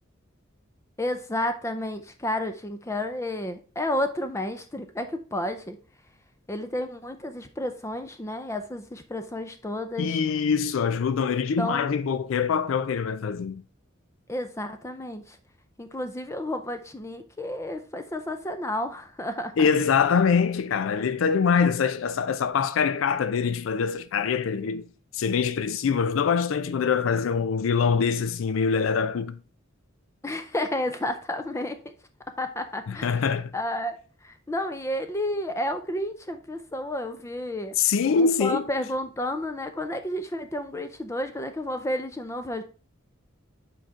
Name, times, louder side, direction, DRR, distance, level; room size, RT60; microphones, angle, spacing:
voice 1, 1.0-5.8 6.5-10.2 11.6-12.0 14.3-15.4 15.8-19.6 30.2-31.8 32.4-33.2 33.5-33.9 34.2-37.7 38.2-42.6, left 1 dB, 15° left, 0.5 m, -31 dB
voice 2, 10.0-13.6 19.6-24.9 25.1-29.4 32.9-33.5 37.8-38.6, left 6 dB, 80° left, 0.4 m, -24 dB
7.6 x 4.6 x 3.6 m
head